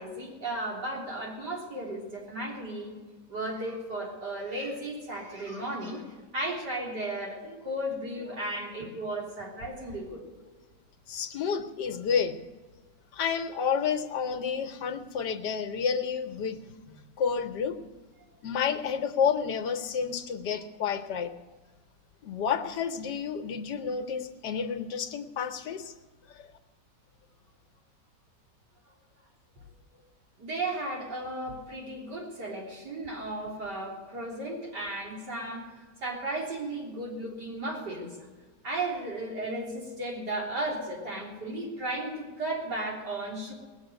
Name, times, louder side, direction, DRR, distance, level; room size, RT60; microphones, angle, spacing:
voice 1, 0.0-2.9 3.3-10.2 30.4-35.7 36.0-38.2 38.6-43.5, right 1 dB, 70° right, -3 dB, 4.1 m, -35 dB
voice 2, 11.1-12.4 13.1-16.6 16.9-17.8 18.4-21.3 22.2-25.9 26.3-26.5, left 6 dB, 75° left, 7 dB, 1.5 m, -30 dB
19.5 x 8.0 x 8.0 m, 1.3 s
omnidirectional pair, 1.9 m